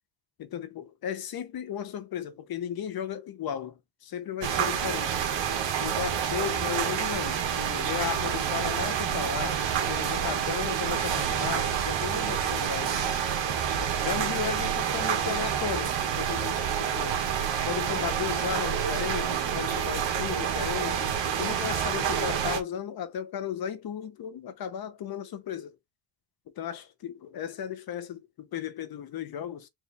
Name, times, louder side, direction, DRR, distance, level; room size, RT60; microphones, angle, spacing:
voice 1, 0.4-5.2 5.8-13.1 14.0-17.2 17.6-25.8 26.5-29.7, left 9 dB, 50° left, 0.9 m, -35 dB
sound 1, 4.4-22.6, right 8 dB, 65° right, 1.4 m, -28 dB
4.6 x 2.6 x 3.3 m
cardioid pair, 145°, 48 cm